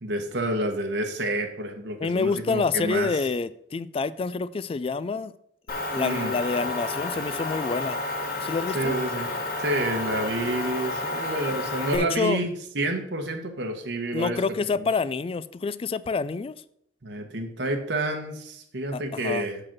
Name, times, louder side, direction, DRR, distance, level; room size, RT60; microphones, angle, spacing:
voice 1, 0.0-3.1 6.0-6.3 8.7-9.3 9.6-14.4 14.7-14.9 17.0-19.6, right 1 dB, 75° right, 1.1 m, -29 dB
voice 2, 2.0-5.3 5.9-8.0 8.4-9.0 11.9-12.4 14.1-16.6 18.9-19.5, left 4 dB, 30° left, 0.3 m, -27 dB
Motor vehicle (road) / Engine, 5.7-12.0, left 2 dB, 60° left, 1.8 m, -31 dB
7.6 x 5.0 x 5.9 m
head